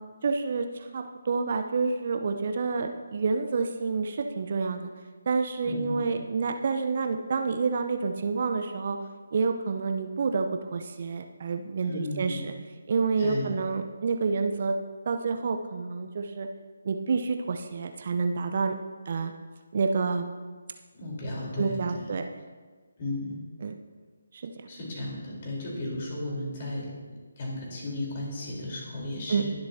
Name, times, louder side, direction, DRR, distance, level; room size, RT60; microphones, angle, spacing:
voice 1, 0.2-0.7 0.9-4.9 5.3-9.0 9.3-12.5 12.9-14.7 15.1-16.5 16.8-18.7 19.1-19.3 19.7-20.3 21.6-22.2 23.6-23.8 24.3-24.5 29.3-29.4, right 4 dB, 45° right, 6 dB, 0.7 m, -28 dB
voice 2, 5.6-6.0 11.8-12.4 13.2-13.5 21.0-22.1 23.0-23.4 24.7-26.9 27.4-29.5, left 1 dB, 35° left, -3 dB, 3.8 m, -34 dB
20.5 x 7.8 x 2.8 m, 1.4 s
figure-of-eight pair, 145°, 0 cm